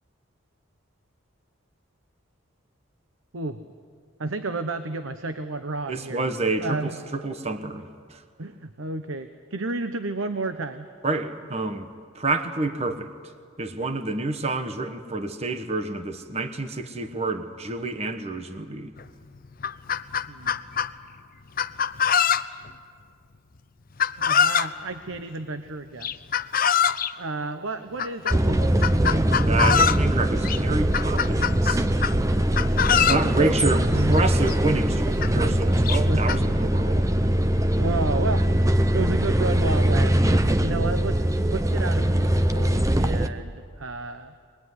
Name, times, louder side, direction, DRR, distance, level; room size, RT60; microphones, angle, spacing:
voice 1, 4.2-6.2 6.6-7.0 8.4-10.9 20.3-20.6 24.2-26.2 27.2-28.8 32.6-33.3 33.9-34.1 36.0-36.6 37.8-38.5 38.8-44.3, right 3 dB, 85° right, 9 dB, 1.0 m, -32 dB
voice 2, 5.9-8.2 11.0-11.9 12.1-13.1 13.6-18.9 29.4-31.8 33.0-37.2, right 3 dB, 30° right, 8 dB, 1.2 m, -28 dB
Chicken rooster, 19.0-19.1 19.4-20.9 21.6-22.7 24.0-24.7 26.0-27.1 28.0-28.4 28.8-30.0 30.4-30.6 30.9-32.2 32.5-33.3 34.2-34.3 34.5-34.6 35.2-35.3 35.9-36.4, left 7 dB, 45° left, 0.6 m, -23 dB
sound 1, 28.3-43.3, right 1 dB, 15° right, 0.7 m, -22 dB
23.0 x 21.0 x 9.6 m, 2.1 s
head